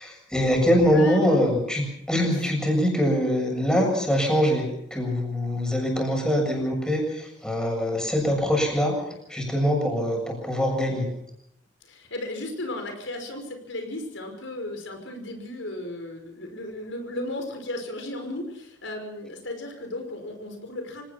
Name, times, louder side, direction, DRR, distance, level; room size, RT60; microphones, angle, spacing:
voice 1, 0.0-4.7 4.9-9.0 9.3-11.1, equal, 5° left, 1 dB, 7.2 m, -23 dB
voice 2, 0.9-1.4 11.8-21.0, left 1 dB, 85° left, 4 dB, 5.5 m, -35 dB
26.5 x 18.0 x 6.0 m, 0.75 s
head